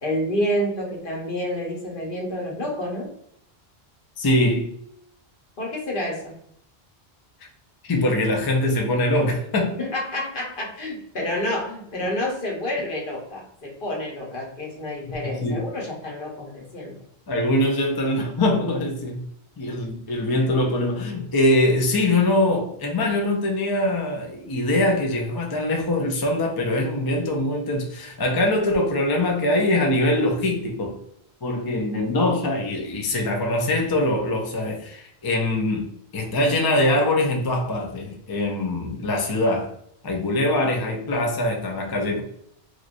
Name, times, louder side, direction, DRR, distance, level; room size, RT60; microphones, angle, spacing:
voice 1, 0.0-3.1 5.6-6.3 9.8-17.0, left 1 dB, 55° left, 1.1 m, -29 dB
voice 2, 4.2-4.7 7.8-9.8 15.2-15.7 17.3-19.2 19.6-31.0 31.4-39.7 40.0-42.2, left 1 dB, 35° left, 0.4 m, -23 dB
3.1 x 2.5 x 2.5 m
omnidirectional pair, 1.1 m